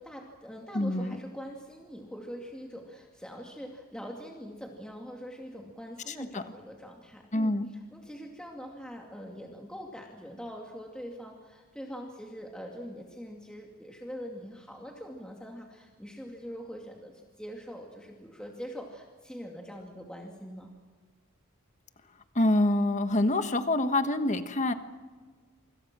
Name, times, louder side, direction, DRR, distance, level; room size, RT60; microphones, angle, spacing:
voice 1, 0.0-20.7, equal, 5° left, 0 dB, 2.4 m, -43 dB
voice 2, 0.7-1.1 6.1-6.4 7.3-7.7 22.3-24.7, left 1 dB, 35° left, 9 dB, 1.4 m, -26 dB
28.0 x 25.5 x 6.2 m, 1.5 s
head